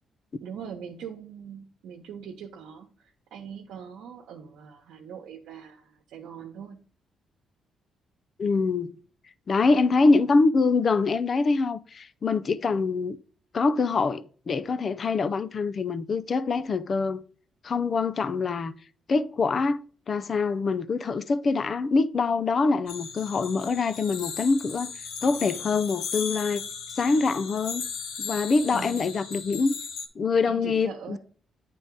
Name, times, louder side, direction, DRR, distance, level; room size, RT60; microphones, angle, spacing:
voice 1, 0.4-6.8 28.7-29.1 30.5-31.2, right 7 dB, 80° right, 1.0 m, -41 dB
voice 2, 8.4-8.9 9.5-13.2 13.5-17.2 17.6-18.7 19.1-19.8 20.1-24.9 25.2-26.7 27.0-27.8 28.2-29.7 30.2-31.2, left 4 dB, 45° left, 0.5 m, -24 dB
Chimes flange, 22.9-30.1, left 6 dB, 80° left, 1.1 m, -37 dB
9.5 x 3.8 x 3.8 m
cardioid pair, 90°, 0 cm